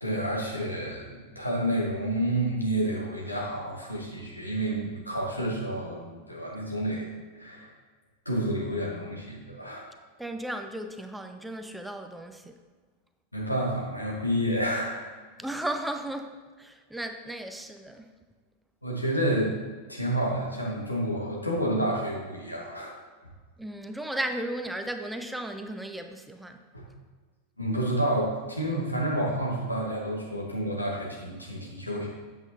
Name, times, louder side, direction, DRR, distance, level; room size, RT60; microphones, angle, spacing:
voice 1, 0.0-7.1 7.3-7.7 8.2-9.8 13.3-15.0 18.8-19.6 19.9-22.9 26.7-26.8 27.6-32.1, right 1 dB, 85° left, -3 dB, 1.6 m, -29 dB
voice 2, 10.2-12.6 15.4-18.1 23.6-26.6, right 1 dB, 5° right, 6 dB, 0.5 m, -35 dB
7.9 x 7.7 x 2.7 m, 1.4 s
figure-of-eight pair, 90°, 0 cm